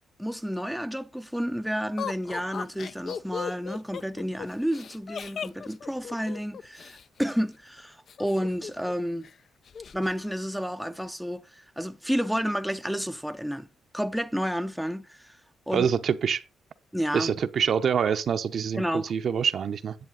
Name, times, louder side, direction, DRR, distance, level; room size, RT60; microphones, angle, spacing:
voice 1, 0.2-9.3 9.9-13.7 13.9-15.4 15.7-15.9 16.9-17.3 18.8-19.1, equal, ahead, 0.6 m, -30 dB
Laughter, 2.0-7.0 8.1-8.9 9.2-9.3 9.7-10.1, left 7 dB, 50° left, 0.4 m, -37 dB
voice 2, 15.7-16.4 17.1-20.0, right 7 dB, 55° right, 0.8 m, -25 dB
9.7 x 7.3 x 3.9 m
cardioid pair, 90°, 0 cm